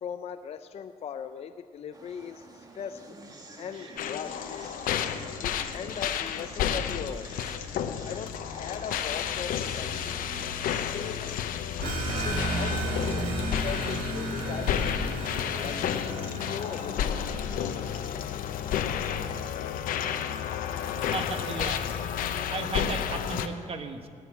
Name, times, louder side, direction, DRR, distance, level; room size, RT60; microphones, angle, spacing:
voice 1, 0.0-3.0 3.6-4.4 5.4-7.4 8.0-10.2 10.9-11.5 11.8-11.9 12.2-13.3 13.6-15.0 15.6-15.8 16.2-17.6, left 7 dB, 45° left, 8 dB, 0.4 m, -39 dB
sound 1, 1.9-11.4, right 2 dB, 25° right, 1.3 m, -47 dB
sound 2, 4.0-23.5, left 9 dB, 80° left, 0.7 m, -31 dB
sound 3, 11.8-18.1, right 2 dB, 80° right, 2.2 m, -34 dB
voice 2, 20.9-24.1, right 4 dB, 45° right, 7 dB, 1.0 m, -36 dB
18.5 x 6.2 x 7.8 m, 2.2 s
cardioid pair, 130°, 14 cm